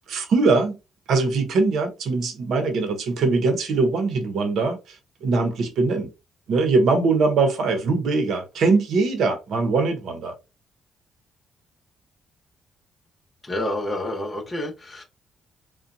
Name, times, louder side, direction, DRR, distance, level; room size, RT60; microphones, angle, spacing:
voice 1, 0.1-0.8 1.1-5.0 5.2-6.1 6.5-10.3, right 3 dB, 70° right, 0.7 m, -22 dB
voice 2, 13.4-15.0, left 1 dB, 20° left, 0.9 m, -28 dB
2.6 x 2.1 x 2.5 m
cardioid pair, 90°, 0 cm